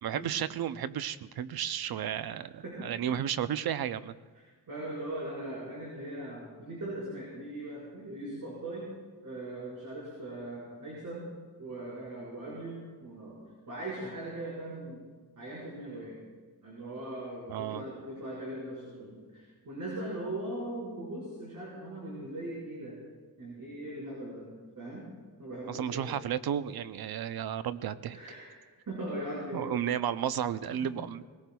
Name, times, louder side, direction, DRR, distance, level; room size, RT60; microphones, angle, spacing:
voice 1, 0.0-4.1 17.5-17.8 25.7-28.2 29.5-31.2, right 9 dB, 65° right, 13 dB, 0.6 m, -33 dB
voice 2, 4.4-8.9 9.2-11.3 11.6-13.4 13.7-15.0 15.4-16.2 16.6-22.9 23.4-24.4 24.7-25.1 25.4-26.0 28.1-29.8 30.7-30.8, right 1 dB, 50° right, -6 dB, 4.9 m, -40 dB
20.0 x 17.5 x 2.3 m, 1.4 s
cardioid pair, 100°, 39 cm